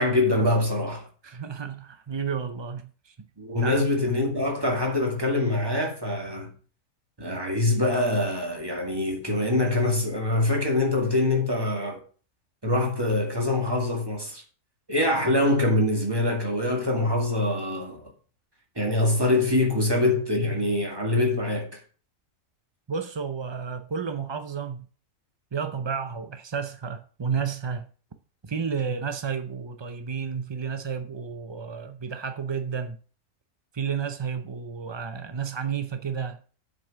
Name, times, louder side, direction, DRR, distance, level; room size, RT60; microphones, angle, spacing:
voice 1, 0.0-1.1 3.4-6.5 7.2-12.0 12.6-14.4 14.9-18.0 18.8-21.8, left 2 dB, 15° right, 2.1 m, -24 dB
voice 2, 1.2-3.1 3.6-3.9 22.9-24.9 25.5-27.9 28.4-33.0 33.7-36.4, right 6 dB, 45° right, 0.3 m, -31 dB
7.6 x 5.3 x 6.7 m
omnidirectional pair, 1.4 m